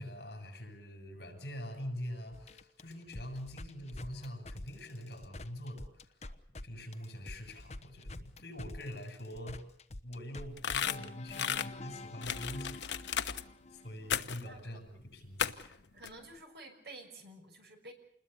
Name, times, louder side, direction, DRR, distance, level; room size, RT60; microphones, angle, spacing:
voice 1, 0.0-6.1 6.6-9.6 10.0-13.2 13.7-15.8, equal, 65° left, 6 dB, 7.0 m, -44 dB
sound 1, 2.3-6.6 6.9-14.1, left 2 dB, 35° left, 1.1 m, -47 dB
sound 2, 10.6-11.7 12.2-13.4 14.1-14.5 15.4-15.7 16.0-16.1, left 8 dB, 85° left, 1.1 m, -34 dB
voice 2, 15.9-17.9, right 2 dB, 65° right, 4 dB, 6.3 m, -50 dB
27.5 x 21.0 x 6.9 m, 0.67 s
head